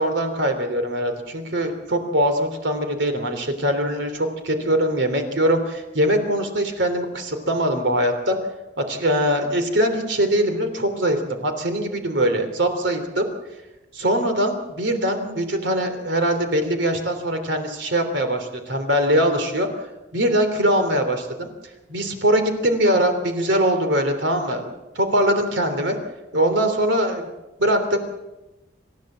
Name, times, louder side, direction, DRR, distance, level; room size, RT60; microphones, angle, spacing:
voice 1, 0.0-8.4 8.8-13.2 13.9-19.9 20.1-21.5 21.9-26.0 26.3-27.3 27.6-28.0, right 1 dB, 65° right, 6 dB, 3.3 m, -22 dB
27.5 x 15.0 x 7.6 m, 1.0 s
head